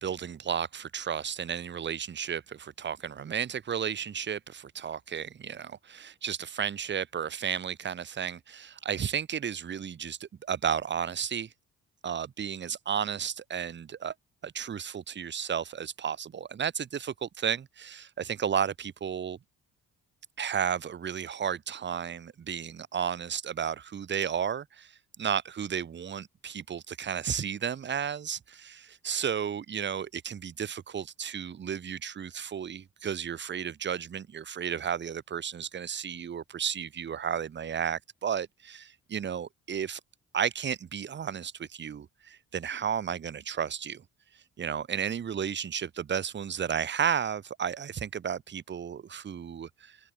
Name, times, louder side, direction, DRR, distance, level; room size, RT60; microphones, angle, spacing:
voice 1, 0.0-11.5 12.0-14.1 14.4-19.4 20.4-24.9 25.2-40.0 40.3-44.0 44.6-50.0, right 8 dB, 35° right, 0.9 m, -33 dB
cardioid pair, 90°, 30 cm